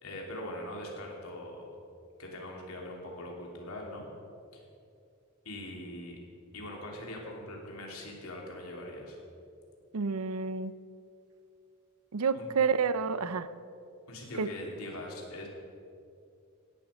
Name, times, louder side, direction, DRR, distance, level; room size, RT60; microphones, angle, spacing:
voice 1, 0.0-1.7 2.2-4.1 4.5-4.6 5.4-6.2 6.5-9.2 12.3-12.5 14.1-15.5, left 1 dB, 80° left, -1 dB, 3.0 m, -42 dB
voice 2, 9.9-10.7 12.1-13.5 14.4-14.5, right 5 dB, 85° right, 14 dB, 0.6 m, -29 dB
17.0 x 11.0 x 5.1 m, 2.5 s
head